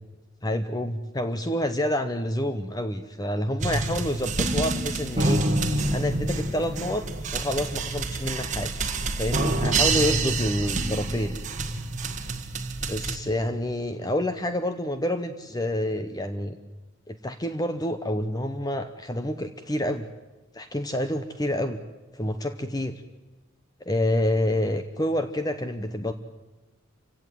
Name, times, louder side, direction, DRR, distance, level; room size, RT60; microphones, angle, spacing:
voice 1, 0.4-5.4 5.9-7.0 7.3-8.7 9.2-11.4 12.9-16.6 17.1-20.1 20.5-21.8 22.1-23.0 23.8-26.1, left 1 dB, 20° left, 9 dB, 0.9 m, -28 dB
sound 1, 3.6-13.2, right 2 dB, 35° right, 1.9 m, -27 dB
27.0 x 16.5 x 9.2 m, 1.1 s
head